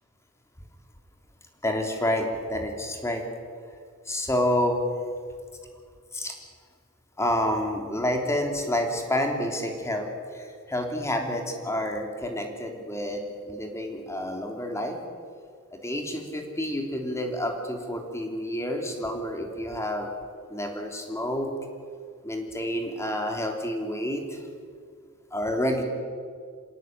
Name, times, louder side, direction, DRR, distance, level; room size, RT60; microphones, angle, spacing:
voice 1, 1.6-3.3 4.0-4.8 6.1-6.4 7.2-15.0 15.7-20.1 20.5-21.5 22.2-24.4 25.3-25.8, left 1 dB, 15° left, 3 dB, 3.3 m, -29 dB
26.5 x 17.5 x 9.3 m, 2.1 s
head